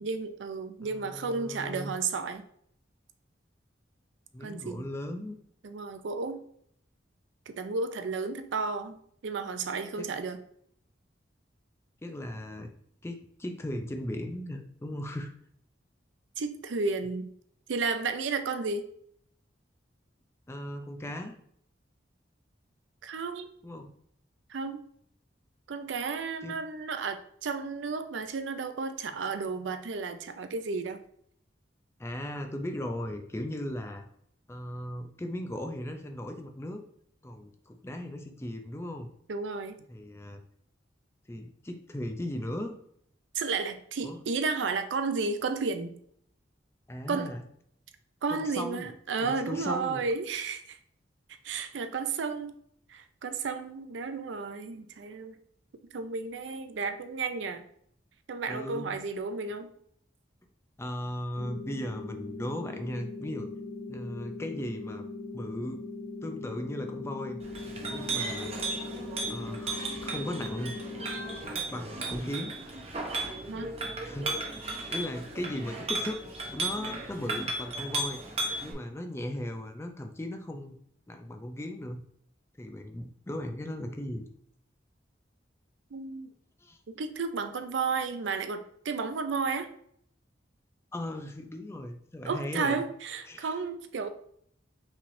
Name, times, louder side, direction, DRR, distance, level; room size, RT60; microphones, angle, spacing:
voice 1, 0.0-2.4 4.4-4.8 5.6-6.4 7.5-10.4 16.4-17.3 17.7-18.9 23.0-23.5 24.5-24.8 25.7-31.0 39.3-39.8 43.3-45.9 47.1-47.3 48.2-50.8 51.4-52.5 52.9-55.4 55.9-57.6 58.3-59.7 73.5-73.7 85.9-86.3 86.9-89.7 92.2-94.1, right 4 dB, 80° right, 9 dB, 0.5 m, -32 dB
voice 2, 0.8-1.9 4.3-5.4 10.0-10.1 12.0-12.7 13.0-15.3 20.5-21.4 23.6-23.9 26.4-26.6 32.0-34.0 34.5-36.8 37.2-39.1 39.9-40.4 41.3-42.8 44.0-44.2 46.9-47.4 48.3-48.9 49.2-50.0 58.5-59.0 60.8-63.5 63.9-65.0 65.3-65.9 66.2-67.4 67.9-68.5 69.3-70.8 71.7-72.5 74.0-74.3 74.9-78.2 78.6-80.8 81.1-82.0 82.6-84.3 86.6-86.8 90.9-92.8 93.3-93.5, left 1 dB, 15° left, 5 dB, 0.4 m, -37 dB
sound 1, 61.4-71.4, left 3 dB, 85° left, 1.0 m, -40 dB
Chink clink, 67.4-78.7, right 2 dB, 35° right, 0.7 m, -35 dB
5.5 x 3.3 x 2.6 m, 0.66 s
head